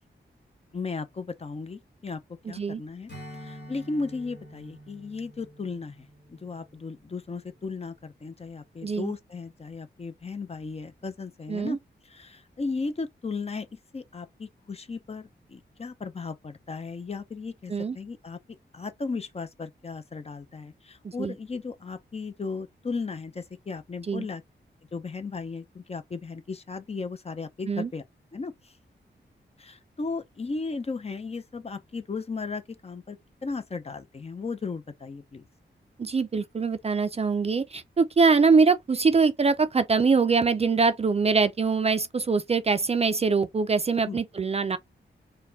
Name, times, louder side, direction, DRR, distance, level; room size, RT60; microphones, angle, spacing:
voice 1, 0.7-2.2 2.5-3.1 3.4-11.8 12.0-18.4 18.7-24.4 24.9-28.0 28.3-28.7 29.6-35.5 44.1-44.2, left 4 dB, 35° left, 0.6 m, -36 dB
voice 2, 2.5-2.8 8.8-9.1 11.5-11.8 17.7-18.0 21.0-21.3 24.1-24.3 27.7-27.9 36.0-44.8, right 4 dB, 35° right, 0.4 m, -23 dB
Strum, 3.1-7.9, equal, 60° left, 1.8 m, -47 dB
4.1 x 2.2 x 3.5 m
wide cardioid pair, 90°, 19 cm